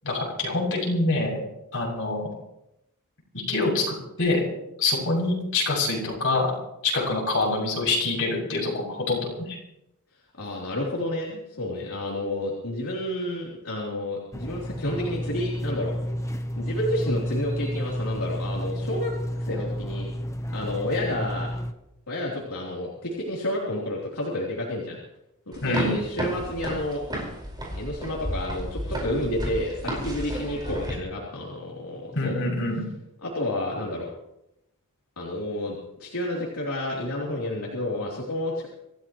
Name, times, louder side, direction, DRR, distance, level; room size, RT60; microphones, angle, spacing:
voice 1, 0.0-1.4 1.7-2.3 3.5-4.4 4.8-6.5 6.9-9.6 25.6-25.9 32.1-32.8, left 2 dB, 60° left, -3 dB, 7.3 m, -25 dB
voice 2, 10.4-15.9 16.5-20.1 20.5-21.5 22.1-25.0 25.5-27.0 27.7-32.4 33.2-34.1 35.2-38.7, left 1 dB, 80° left, -5 dB, 3.4 m, -30 dB
sound 1, 14.3-21.7, equal, 15° left, 0.9 m, -31 dB
sound 2, 25.5-31.0, equal, 20° right, 5.1 m, -33 dB
26.5 x 15.0 x 3.1 m, 0.86 s
head